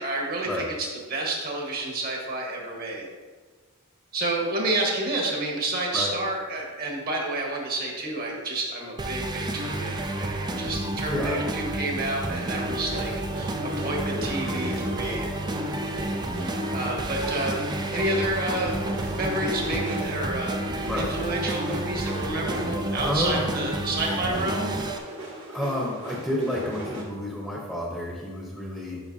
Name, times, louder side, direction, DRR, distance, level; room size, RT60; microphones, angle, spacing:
voice 1, 0.0-3.1 4.1-15.3 16.7-17.6 17.9-18.8 19.1-24.7, right 2 dB, 45° right, -1 dB, 1.6 m, -29 dB
sound 1, 9.0-25.0, right 1 dB, 20° right, 0.4 m, -30 dB
voice 2, 11.1-11.4 14.1-14.9 20.8-21.1 22.9-23.5 25.5-29.0, equal, ahead, -4 dB, 0.9 m, -30 dB
sound 2, 12.3-20.3 20.7-27.0, right 1 dB, 60° right, 2.0 m, -38 dB
11.0 x 5.7 x 2.8 m, 1.4 s
head